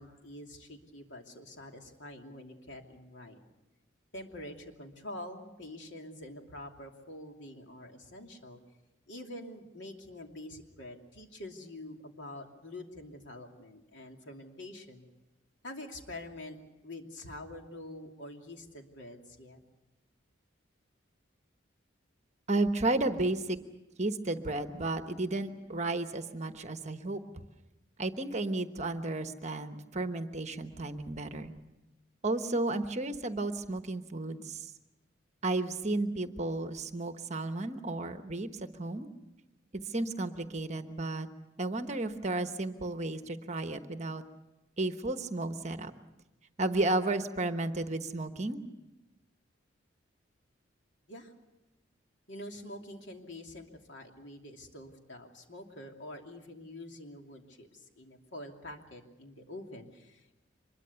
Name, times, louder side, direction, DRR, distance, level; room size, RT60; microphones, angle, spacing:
voice 1, 0.0-3.4 4.1-8.6 9.1-15.1 15.6-16.6 16.8-19.6 51.1-51.3 52.3-60.3, left 1 dB, 70° left, 3 dB, 2.8 m, -46 dB
voice 2, 22.5-23.6 24.0-27.2 28.0-31.5 32.2-34.7 35.4-39.1 39.7-41.3 41.6-44.2 44.8-45.9 46.6-48.6, right 2 dB, 35° right, 8 dB, 1.1 m, -33 dB
25.0 x 22.0 x 7.0 m, 1.0 s
head